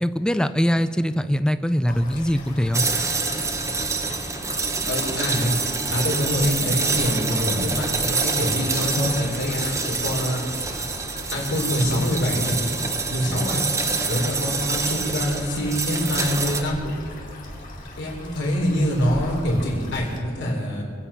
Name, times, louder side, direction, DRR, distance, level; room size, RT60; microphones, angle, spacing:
voice 1, 0.0-2.9, equal, 5° left, 11 dB, 0.5 m, -22 dB
sound 1, 1.9-20.2, left 1 dB, 40° left, 3.3 m, -39 dB
sound 2, 2.7-16.6, right 4 dB, 15° right, 0.8 m, -26 dB
voice 2, 4.9-5.5 5.9-10.4 11.3-12.6 13.1-13.6 14.1-16.9 18.0-20.8, equal, 60° left, -2 dB, 3.7 m, -25 dB
26.0 x 8.7 x 5.7 m, 2.1 s
head